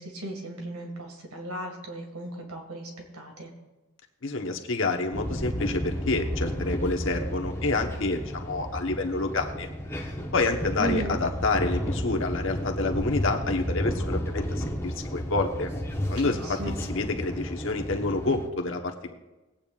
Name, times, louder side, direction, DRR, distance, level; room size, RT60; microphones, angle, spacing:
voice 1, 0.0-3.5 10.8-11.2 16.2-16.7, right 1 dB, 90° right, 2 dB, 2.0 m, -36 dB
voice 2, 4.2-9.7 10.3-15.7 16.1-19.1, left 3 dB, 60° left, 4 dB, 1.1 m, -28 dB
sound 1, 5.1-18.5, equal, 10° left, 1.0 m, -32 dB
20.5 x 8.8 x 2.5 m, 1.1 s
head